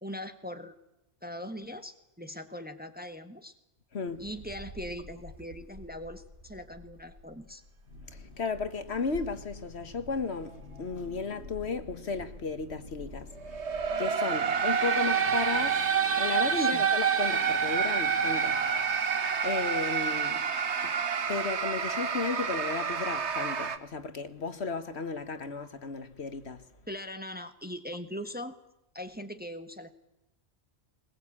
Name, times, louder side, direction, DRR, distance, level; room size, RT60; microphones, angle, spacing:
voice 1, 0.0-0.8 1.2-3.5 4.2-7.6 16.6-16.8 26.9-28.6 28.9-29.9, equal, 10° right, 1.3 m, -40 dB
voice 2, 3.9-4.3 7.9-20.5 20.8-20.9 21.3-26.7, left 4 dB, 65° left, 1.6 m, -35 dB
Wind, 4.1-14.1, equal, 50° right, 4.1 m, -49 dB
sound 1, 13.4-23.8, right 6 dB, 70° right, 1.5 m, -28 dB
21.5 x 21.0 x 8.6 m
omnidirectional pair, 1.2 m